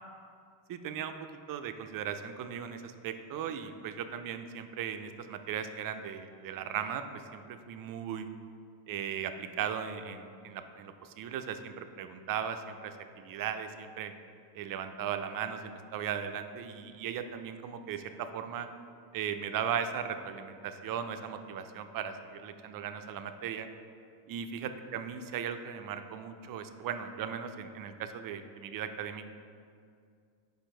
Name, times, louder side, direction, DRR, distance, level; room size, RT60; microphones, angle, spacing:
voice 1, 0.7-1.1 1.5-7.0 7.3-8.3 8.9-14.1 14.5-18.7 19.1-23.7 24.3-29.3, right 8 dB, 45° right, 8 dB, 0.5 m, -37 dB
5.1 x 4.5 x 5.1 m, 2.3 s
supercardioid pair, 95°, 47 cm